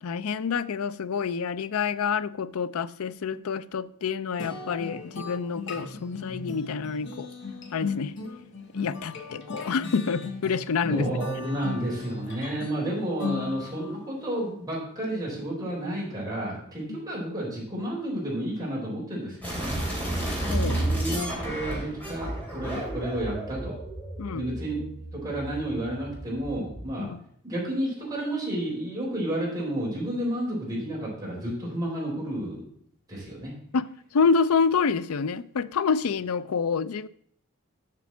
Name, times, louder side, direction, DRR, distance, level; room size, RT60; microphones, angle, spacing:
voice 1, 0.0-7.3 7.7-8.1 8.7-11.1 16.9-17.0 20.5-20.8 22.7-22.8 24.2-24.4 27.0-27.2 33.7-33.9 34.1-37.1, left 5 dB, 80° left, 0.5 m, -27 dB
sound 1, 4.4-14.0, left 4 dB, 55° left, 1.3 m, -36 dB
voice 2, 10.9-19.8 20.7-23.8 24.3-24.8 25.1-27.1 27.4-32.6 33.1-33.5, right 1 dB, 15° right, 4.0 m, -31 dB
sound 2, 19.4-26.9, right 1 dB, 5° left, 3.0 m, -32 dB
7.6 x 6.1 x 7.1 m
head